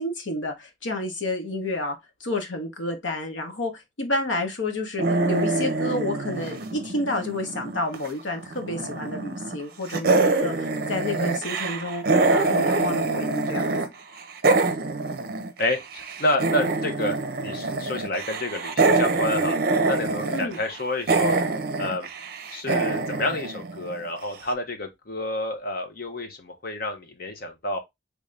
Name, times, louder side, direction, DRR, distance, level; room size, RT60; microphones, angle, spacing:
voice 1, 0.0-13.7 20.3-20.6, left 2 dB, 85° left, 1.0 m, -30 dB
sound 1, 5.0-8.1 8.4-9.6 9.9-13.9 14.1-24.2, right 3 dB, 50° right, 0.5 m, -25 dB
voice 2, 15.6-19.6 19.9-21.3 21.8-22.1 22.5-27.8, left 1 dB, 50° left, 0.8 m, -29 dB
3.4 x 2.6 x 3.3 m
head